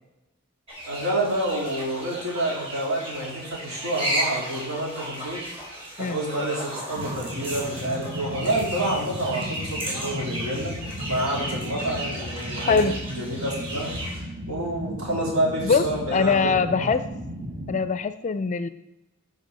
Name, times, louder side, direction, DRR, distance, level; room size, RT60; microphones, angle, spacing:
sound 1, 0.7-14.2, right 1 dB, 25° right, 3.4 m, -34 dB
voice 1, 0.9-5.4 6.0-10.7 11.0-12.8 13.2-14.0 14.5-16.9, right 1 dB, 75° right, -3 dB, 3.5 m, -28 dB
sound 2, 6.9-17.8, equal, 45° right, 1.8 m, -35 dB
voice 2, 12.7-13.0 15.6-17.0 17.7-18.7, left 5 dB, 35° left, 12 dB, 0.4 m, -22 dB
12.5 x 5.3 x 4.2 m, 0.96 s
head